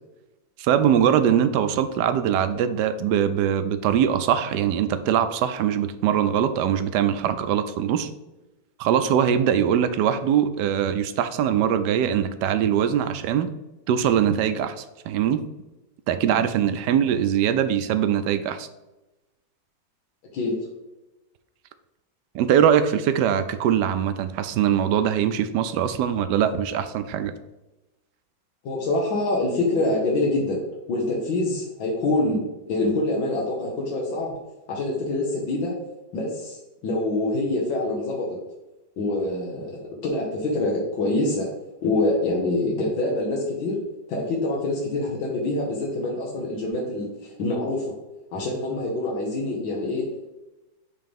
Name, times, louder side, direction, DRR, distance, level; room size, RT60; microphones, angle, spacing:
voice 1, 0.6-8.1 8.8-13.5 13.9-15.4 16.1-18.7 22.3-27.3, right 9 dB, 75° right, 10 dB, 1.1 m, -22 dB
voice 2, 20.3-20.7 28.6-30.6 30.9-32.4 32.7-34.3 34.7-35.8 36.1-38.3 39.0-41.5 41.8-43.8 44.1-47.9 48.3-50.1, left 2 dB, 85° left, -3 dB, 1.9 m, -25 dB
6.6 x 3.4 x 5.2 m, 1.0 s
omnidirectional pair, 2.0 m